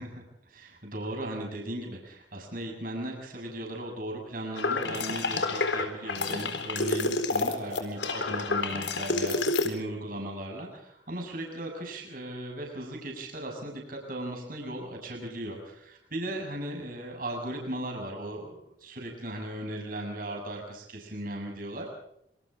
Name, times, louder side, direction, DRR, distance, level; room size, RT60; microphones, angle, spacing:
voice 1, 0.0-21.9, right 1 dB, 45° right, 2 dB, 6.8 m, -37 dB
sound 1, 4.6-9.7, left 3 dB, 70° left, 4.0 m, -29 dB
27.0 x 26.0 x 3.7 m, 0.74 s
head